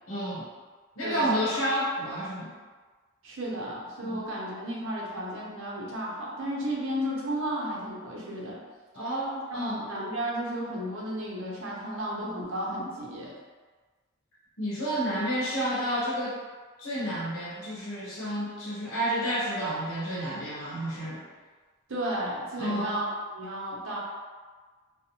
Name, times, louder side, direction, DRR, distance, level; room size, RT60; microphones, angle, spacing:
voice 1, 0.1-0.5 1.0-2.5 4.0-4.2 8.9-9.8 14.6-16.4 16.8-21.2 22.6-23.0, equal, 75° left, -7 dB, 0.8 m, -30 dB
voice 2, 1.0-1.5 3.2-8.6 9.5-13.3 21.9-24.0, right 1 dB, 65° right, -4 dB, 0.6 m, -33 dB
2.6 x 2.0 x 2.9 m, 1.4 s
head